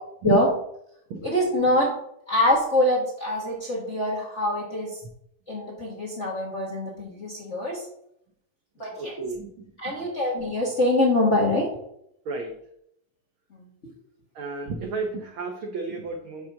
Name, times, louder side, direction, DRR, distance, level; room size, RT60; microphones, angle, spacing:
voice 1, 1.2-1.9 2.3-5.0 5.5-7.9 8.8-9.2 9.8-11.7 13.5-13.7, left 1 dB, 40° left, -3 dB, 1.0 m, -24 dB
voice 2, 8.9-9.5 12.3-12.5 14.3-16.5, right 4 dB, 85° right, 4 dB, 1.1 m, -31 dB
7.2 x 3.7 x 6.4 m, 0.74 s
omnidirectional pair, 3.4 m